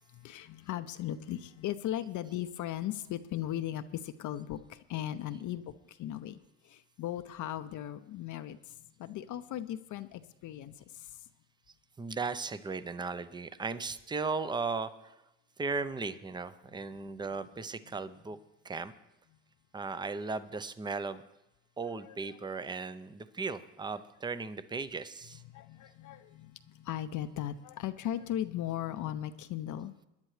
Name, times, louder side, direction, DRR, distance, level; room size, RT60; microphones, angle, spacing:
voice 1, 0.1-11.3 17.0-17.1 17.6-18.0 19.9-20.0 20.5-20.6 21.1-21.2 21.8-22.5 24.3-24.5 25.4-29.9, left 12 dB, 50° left, 9 dB, 0.7 m, -38 dB
voice 2, 12.0-15.1 15.6-18.4 18.6-18.9 19.7-21.2 21.8-25.4, right 4 dB, 10° right, 13 dB, 0.6 m, -36 dB
21.5 x 10.5 x 3.3 m, 0.93 s
supercardioid pair, 90°, 39 cm